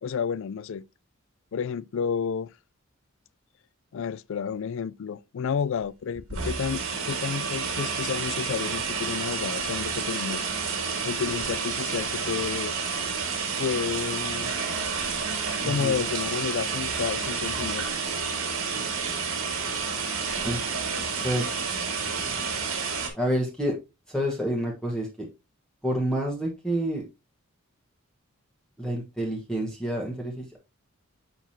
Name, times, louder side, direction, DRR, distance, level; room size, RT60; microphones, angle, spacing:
voice 1, 0.0-0.8 1.5-2.5 3.9-10.5 11.0-12.7 13.6-14.5 15.6-18.1, left 6 dB, 60° left, 0.4 m, -31 dB
sound 1, 5.8-5.9 6.2-23.1, right 5 dB, 70° right, 1.9 m, -30 dB
voice 2, 15.6-16.0 20.4-20.7 21.2-21.7 23.1-23.8 24.1-25.3 25.8-27.0 28.8-30.6, equal, 5° left, 1.2 m, -28 dB
6.9 x 5.9 x 2.8 m
head